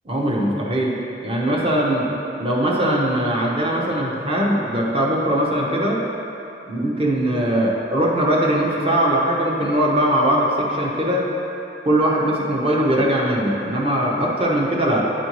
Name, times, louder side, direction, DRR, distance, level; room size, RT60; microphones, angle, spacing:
voice 1, 0.1-0.9 1.2-2.1 2.4-6.0 6.7-11.2 11.8-15.1, right 1 dB, 30° right, -3 dB, 0.8 m, -20 dB
9.1 x 4.3 x 3.0 m, 2.9 s
head